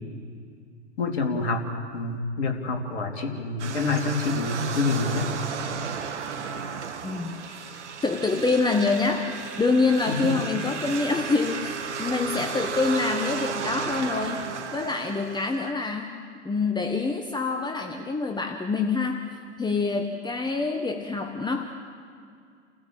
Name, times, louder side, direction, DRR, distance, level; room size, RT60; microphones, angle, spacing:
voice 1, 1.0-1.7 1.9-5.3 10.1-10.4, left 3 dB, 65° left, 3 dB, 3.2 m, -27 dB
sound 1, 3.6-15.7, right 6 dB, 75° right, 1.6 m, -34 dB
voice 2, 7.0-7.4 8.0-14.4 14.7-16.1 16.4-19.2 19.6-21.6, left 3 dB, 10° left, 4 dB, 1.4 m, -26 dB
30.0 x 16.0 x 7.8 m, 2.2 s
hypercardioid pair, 95°, 35 cm